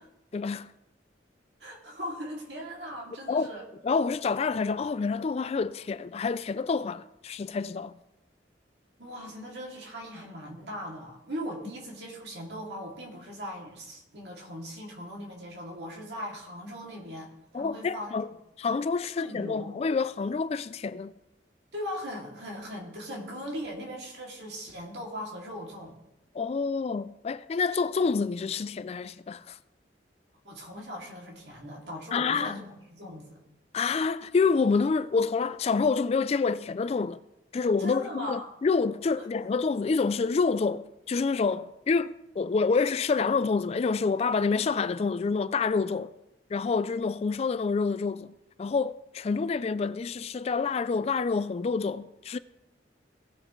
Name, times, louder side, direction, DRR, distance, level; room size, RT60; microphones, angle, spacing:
voice 1, 0.3-0.7 3.3-3.5 3.8-7.9 17.5-21.1 26.3-29.6 32.1-32.5 33.7-37.2 37.5-46.1 46.5-48.3 48.6-52.4, left 4 dB, 35° left, 0.3 m, -27 dB
voice 2, 1.6-3.6 9.0-18.1 19.1-19.8 21.7-26.0 30.4-33.4 37.8-38.5, equal, 75° right, 2.6 m, -39 dB
17.5 x 6.5 x 3.2 m
head